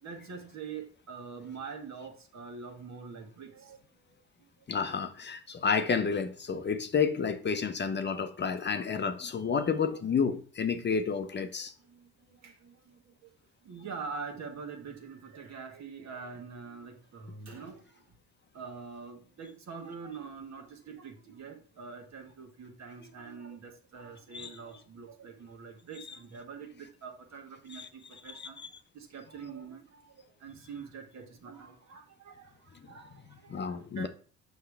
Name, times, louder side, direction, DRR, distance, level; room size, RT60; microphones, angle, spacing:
voice 1, 0.0-3.8 4.1-4.2 11.8-13.3 13.6-18.0 18.5-28.6 28.9-34.1, right 5 dB, 55° right, 1.6 m, -45 dB
voice 2, 4.7-11.7 24.3-24.5 27.7-27.9 28.3-28.7 33.5-34.1, left 6 dB, 35° left, 0.7 m, -30 dB
5.7 x 5.4 x 3.4 m
supercardioid pair, 65°, 33 cm